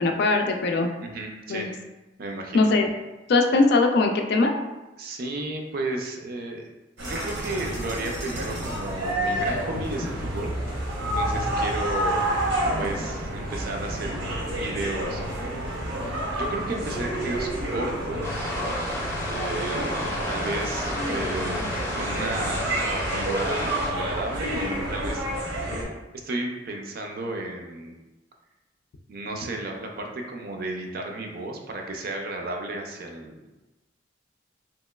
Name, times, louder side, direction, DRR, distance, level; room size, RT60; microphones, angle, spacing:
voice 1, 0.0-0.9 1.5-1.7 2.5-2.9 3.3-4.5, left 3 dB, 60° left, 4 dB, 0.3 m, -20 dB
voice 2, 1.0-1.7 2.2-2.7 5.0-6.6 7.0-10.5 11.0-12.3 12.8-14.2 14.5-15.2 16.3-18.6 19.2-19.9 20.3-21.6 21.9-25.2 26.2-27.9 29.1-33.5, right 2 dB, 55° right, 2 dB, 0.4 m, -33 dB
sound 1, 7.0-25.8, right 1 dB, 85° right, 0.9 m, -29 dB
sound 2, 18.2-23.9, left 1 dB, 15° left, 0.6 m, -31 dB
3.0 x 2.9 x 2.2 m, 1.1 s
head